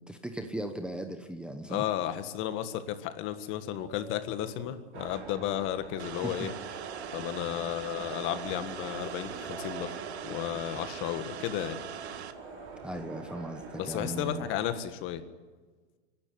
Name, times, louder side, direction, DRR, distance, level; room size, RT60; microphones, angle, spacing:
voice 1, 0.0-1.8 6.2-6.5 12.8-14.5, right 1 dB, 5° right, 5 dB, 1.0 m, -37 dB
voice 2, 1.7-6.5 7.1-10.0 10.2-11.8 13.8-15.2, left 11 dB, 40° left, 10 dB, 1.7 m, -33 dB
sound 1, 2.2-2.8 3.1-5.0 5.7-12.9, right 3 dB, 20° right, 5.7 m, -51 dB
sound 2, 4.9-14.8, right 6 dB, 40° right, 6.0 m, -44 dB
sound 3, 6.0-12.3, right 10 dB, 75° right, 1.7 m, -43 dB
25.5 x 12.0 x 9.8 m, 1.4 s
hypercardioid pair, 130°, 33 cm